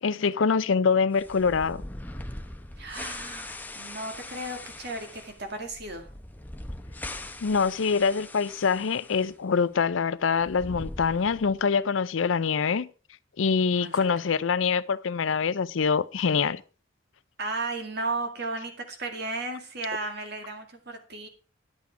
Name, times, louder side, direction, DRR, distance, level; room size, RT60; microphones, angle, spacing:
voice 1, 0.0-1.8 7.4-12.9 13.4-16.6, left 5 dB, 80° left, 0.5 m, -25 dB
sound 1, 1.1-9.3 9.6-9.7 10.3-11.7, left 1 dB, 10° left, 0.7 m, -41 dB
voice 2, 2.8-6.1 13.8-13.9 17.4-21.3, right 2 dB, 55° right, 2.2 m, -34 dB
11.0 x 8.3 x 4.7 m
head